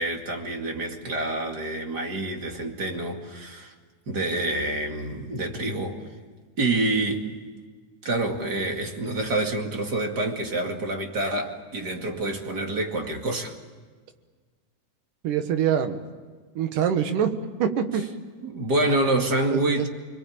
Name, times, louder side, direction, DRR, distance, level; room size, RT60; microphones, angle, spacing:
voice 1, 0.0-3.7 4.1-6.0 6.6-7.3 8.0-13.5 18.4-19.9, right 2 dB, 35° right, 3 dB, 2.6 m, -27 dB
voice 2, 15.2-16.0 16.6-17.3 17.6-18.0 19.5-19.9, right 8 dB, 75° right, 8 dB, 3.0 m, -24 dB
29.5 x 21.5 x 8.8 m, 1.5 s
omnidirectional pair, 3.8 m